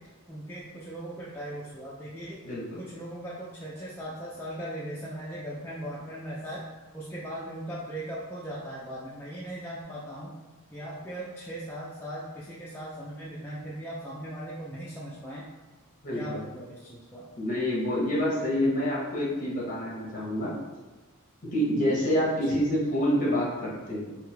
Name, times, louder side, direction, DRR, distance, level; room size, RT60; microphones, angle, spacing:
voice 1, 0.3-2.4 2.8-6.6 6.9-10.3 10.7-15.5 16.1-17.3 18.5-18.8 22.4-22.6, right 1 dB, 10° left, -7 dB, 0.4 m, -39 dB
voice 2, 2.4-2.8 16.0-16.4 17.4-20.6 21.5-24.2, equal, 40° left, -5 dB, 1.1 m, -27 dB
3.3 x 2.8 x 3.3 m, 1.3 s
head